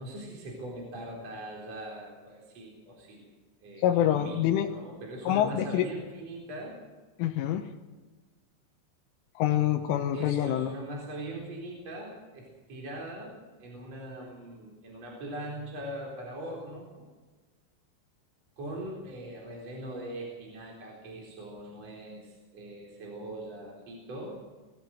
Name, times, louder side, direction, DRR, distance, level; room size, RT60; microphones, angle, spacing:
voice 1, 0.0-3.3 3.6-6.8 10.1-17.0 18.6-24.4, right 1 dB, 35° right, -2 dB, 4.9 m, -41 dB
voice 2, 3.8-4.7 5.3-5.8 7.2-7.6 9.4-10.7, left 11 dB, 85° left, 3 dB, 3.4 m, -26 dB
23.0 x 15.0 x 7.8 m, 1.3 s
omnidirectional pair, 5.7 m